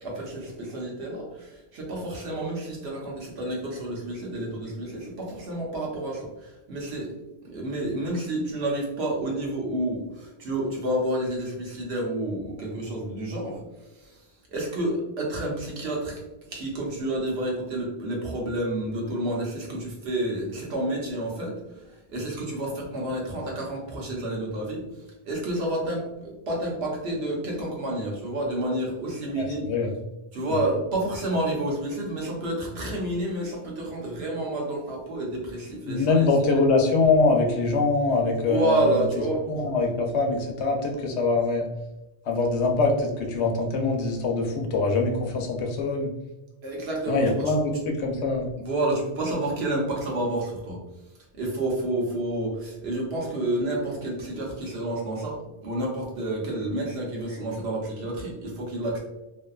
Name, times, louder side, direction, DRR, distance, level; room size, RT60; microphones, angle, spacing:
voice 1, 0.0-7.1 7.4-13.6 13.9-14.2 14.5-16.2 16.5-24.8 25.2-29.7 30.3-36.3 38.4-39.4 46.6-47.6 48.6-50.8 51.4-59.0, right 1 dB, 70° right, -2 dB, 1.0 m, -29 dB
voice 2, 29.4-29.9 30.5-30.6 35.9-39.0 39.5-41.6 42.3-46.1 47.1-48.5, left 3 dB, 80° left, 2 dB, 0.8 m, -23 dB
2.6 x 2.1 x 2.3 m, 0.99 s
omnidirectional pair, 1.1 m